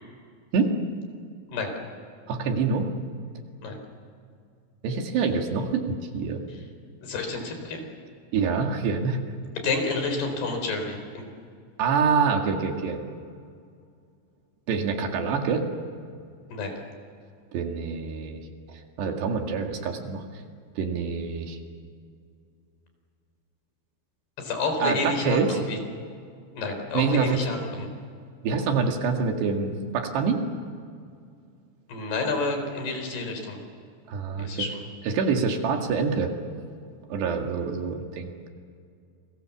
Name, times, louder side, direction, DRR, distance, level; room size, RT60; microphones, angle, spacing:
voice 1, 2.3-2.9 4.8-6.4 8.3-9.2 11.8-13.0 14.7-15.7 17.5-18.4 18.7-20.2 20.8-21.6 24.8-25.6 26.9-27.4 28.4-30.4 34.1-34.7 35.1-36.3 37.1-38.3, right 5 dB, 70° right, 3 dB, 4.1 m, -26 dB
voice 2, 7.0-7.8 9.6-11.3 16.5-16.7 24.4-25.8 26.6-27.9 31.9-33.6 34.4-34.8, left 3 dB, 60° left, 5 dB, 6.0 m, -29 dB
29.5 x 23.5 x 7.2 m, 2.3 s
omnidirectional pair, 5.2 m